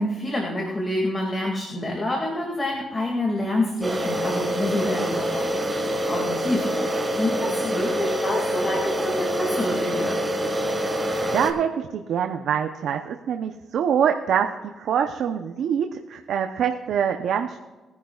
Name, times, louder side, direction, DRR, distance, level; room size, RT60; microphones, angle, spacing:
voice 1, 0.0-10.2, left 1 dB, 25° left, 0 dB, 2.2 m, -27 dB
sound 1, 3.8-11.5, equal, 20° right, 1.6 m, -26 dB
voice 2, 10.8-14.5 14.8-17.6, right 8 dB, 75° right, 5 dB, 0.7 m, -25 dB
21.0 x 10.5 x 2.4 m, 1.2 s
cardioid pair, 105°, 0 cm